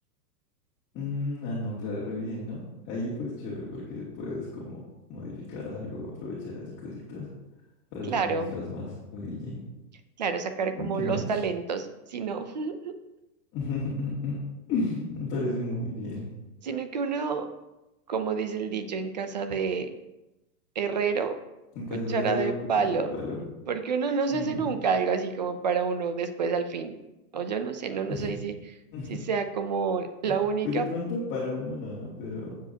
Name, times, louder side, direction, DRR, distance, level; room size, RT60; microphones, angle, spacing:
voice 1, 0.9-4.8 5.1-7.3 7.9-9.6 10.8-11.3 13.5-14.4 14.7-16.3 21.7-23.4 24.3-24.8 28.1-28.3 28.9-29.2 30.6-32.5, left 2 dB, 25° left, -7 dB, 2.3 m, -33 dB
voice 2, 8.0-8.5 10.2-12.9 16.6-17.5 18.1-19.9 20.8-21.4 21.9-23.1 23.7-27.0 27.3-28.5 29.1-30.9, right 5 dB, 30° right, 9 dB, 0.4 m, -28 dB
15.0 x 7.4 x 2.8 m, 0.99 s
hypercardioid pair, 155°, 49 cm